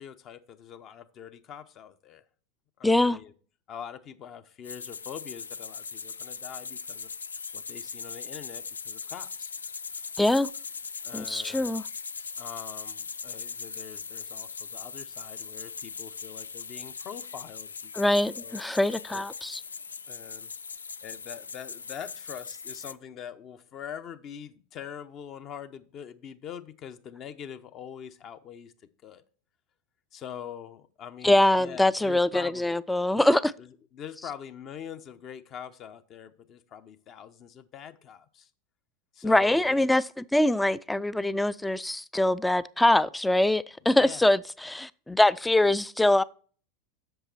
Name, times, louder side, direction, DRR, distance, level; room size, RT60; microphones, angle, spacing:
voice 1, 0.0-2.2 2.8-3.3 3.7-7.1 7.5-9.5 9.9-10.1 11.0-11.7 12.4-18.6 19.1-19.3 20.1-20.5 21.0-28.7 29.0-29.2 30.1-32.6 33.6-38.5 39.1-39.8 43.8-44.2, left 8 dB, 40° left, 0.8 m, -44 dB
voice 2, 2.8-3.2 10.2-10.5 11.1-11.8 18.0-19.6 31.2-33.5 39.2-46.2, left 1 dB, 5° left, 0.4 m, -23 dB
sound 1, 4.6-22.9, left 5 dB, 85° left, 0.3 m, -40 dB
8.0 x 6.6 x 4.4 m
figure-of-eight pair, 85°, 0 cm